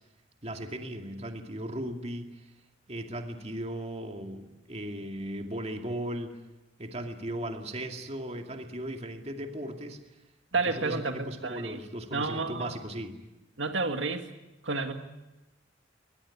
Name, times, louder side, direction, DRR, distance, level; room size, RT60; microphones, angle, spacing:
voice 1, 0.4-2.4 2.9-6.4 6.8-10.0 10.6-13.2, right 1 dB, 35° right, 4 dB, 2.4 m, -37 dB
voice 2, 10.5-11.8 12.1-12.7 13.6-14.2 14.6-14.9, right 3 dB, 90° right, 6 dB, 2.1 m, -30 dB
22.0 x 20.5 x 9.9 m, 1.0 s
head